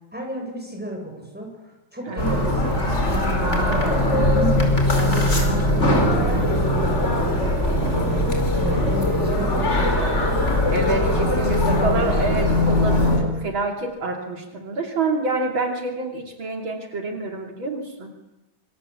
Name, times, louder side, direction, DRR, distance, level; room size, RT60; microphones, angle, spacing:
voice 1, 0.1-1.5 1.9-2.8 3.1-7.3 7.7-10.7 11.1-11.3 11.6-12.5, right 1 dB, 5° right, 1 dB, 7.9 m, -32 dB
voice 2, 2.1-2.4 10.7-18.1, right 2 dB, 70° right, 3 dB, 3.6 m, -27 dB
sound 1, 2.2-13.2, left 1 dB, 30° left, 5.4 m, -20 dB
26.0 x 26.0 x 8.7 m, 0.98 s
omnidirectional pair, 2.3 m